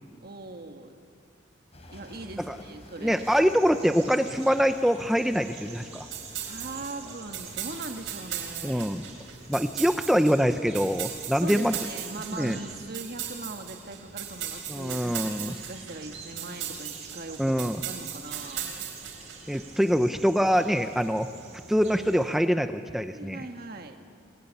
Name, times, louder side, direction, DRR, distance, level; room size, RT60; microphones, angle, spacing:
voice 1, 0.2-1.0 1.9-3.2 6.4-9.0 11.4-18.7 23.1-24.0, right 2 dB, 50° right, 5 dB, 1.7 m, -40 dB
sound 1, 1.7-7.9, left 1 dB, 35° left, 3.9 m, -51 dB
voice 2, 3.0-6.1 8.6-9.0 9.5-11.7 12.3-12.6 14.7-15.6 17.4-17.8 19.5-21.3 21.7-23.5, equal, ahead, 8 dB, 0.6 m, -24 dB
sound 2, 3.1-22.4, right 4 dB, 35° right, 5.0 m, -47 dB
sound 3, 6.1-19.6, right 9 dB, 90° right, 4.2 m, -38 dB
26.0 x 21.0 x 9.9 m, 2.3 s
head